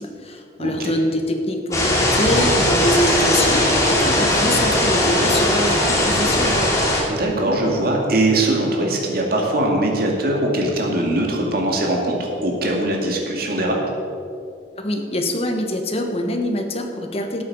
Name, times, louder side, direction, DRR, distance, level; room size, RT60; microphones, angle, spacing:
voice 1, 0.0-6.7 14.8-17.4, left 1 dB, 35° left, 4 dB, 1.2 m, -24 dB
sound 1, 1.7-7.0, left 1 dB, 20° left, 2.5 m, -18 dB
voice 2, 7.1-13.8, right 1 dB, 60° right, 0 dB, 2.1 m, -21 dB
12.5 x 8.6 x 5.5 m, 2.4 s
head